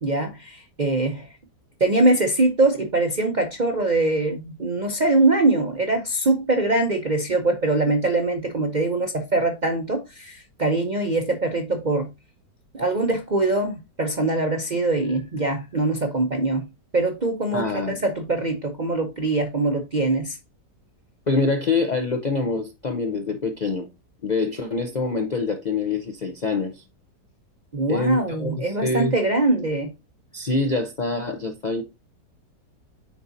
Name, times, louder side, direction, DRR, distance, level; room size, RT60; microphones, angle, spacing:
voice 1, 0.0-1.3 1.8-12.1 12.7-16.7 16.9-20.4 27.7-29.9, right 2 dB, 50° right, 0.5 m, -23 dB
voice 2, 17.5-18.0 21.3-23.9 24.2-26.8 27.9-29.2 30.3-31.8, left 3 dB, 85° left, 0.4 m, -25 dB
9.4 x 4.0 x 2.6 m
omnidirectional pair, 1.9 m